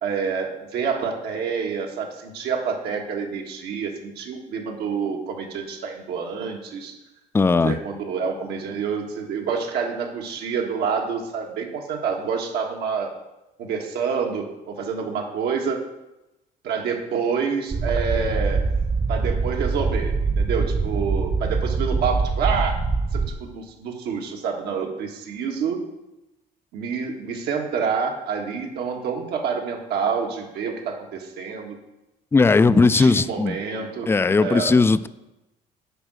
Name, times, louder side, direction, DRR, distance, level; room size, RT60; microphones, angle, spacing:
voice 1, 0.0-6.9 7.6-13.1 13.6-15.8 16.6-18.6 19.1-22.8 23.1-25.8 26.7-31.8 32.7-34.1 34.4-34.7, right 6 dB, 75° right, 2 dB, 1.7 m, -27 dB
voice 2, 7.3-7.8 32.3-33.6 34.1-35.1, left 4 dB, 15° left, 15 dB, 0.3 m, -17 dB
sound 1, 17.7-23.3, right 4 dB, 35° right, 1.1 m, -24 dB
8.9 x 5.5 x 6.3 m, 0.96 s
cardioid pair, 110°, 17 cm